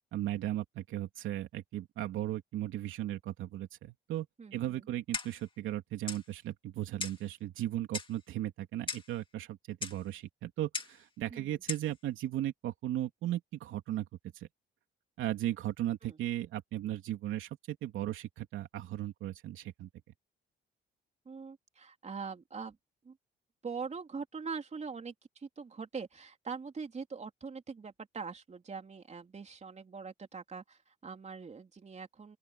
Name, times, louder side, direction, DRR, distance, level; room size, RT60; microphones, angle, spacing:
voice 1, 0.1-14.1 14.3-14.5 15.2-19.9, right 13 dB, 85° right, 3.1 m, -36 dB
voice 2, 4.4-4.9 11.3-11.6 16.0-16.2 21.3-22.8 23.0-23.2 23.6-32.4, right 5 dB, 35° right, 3.9 m, -43 dB
Clock, 5.1-5.5 6.1-6.3 7.0-7.3 7.9-8.2 8.9-9.1 9.8-10.0 10.7-11.0 11.7-11.9, left 4 dB, 25° left, 2.6 m, -38 dB
open air
cardioid pair, 90°, 20 cm